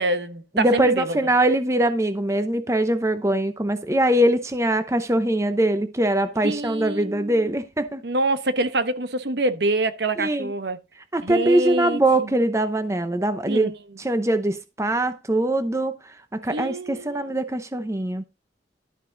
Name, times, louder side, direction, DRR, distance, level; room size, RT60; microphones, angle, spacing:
voice 1, 0.0-1.2 6.4-7.6 8.0-10.8 11.2-12.3 13.5-13.7 16.5-17.4, right 2 dB, 70° right, 1.0 m, -26 dB
voice 2, 0.5-8.0 10.2-10.5 11.1-13.7 14.0-15.9 16.3-18.2, right 1 dB, 15° right, 0.8 m, -22 dB
12.0 x 6.5 x 3.9 m
head